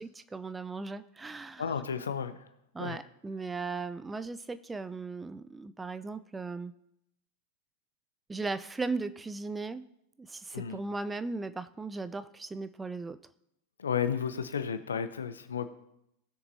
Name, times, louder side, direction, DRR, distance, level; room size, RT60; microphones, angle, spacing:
voice 1, 0.0-1.6 2.7-6.7 8.3-9.8 10.2-13.2, right 3 dB, 10° right, 13 dB, 0.4 m, -37 dB
voice 2, 1.6-2.5 2.8-3.0 10.5-10.8 13.8-15.7, left 7 dB, 70° left, 12 dB, 0.8 m, -33 dB
19.0 x 6.7 x 2.8 m, 0.81 s
figure-of-eight pair, 90°, 0 cm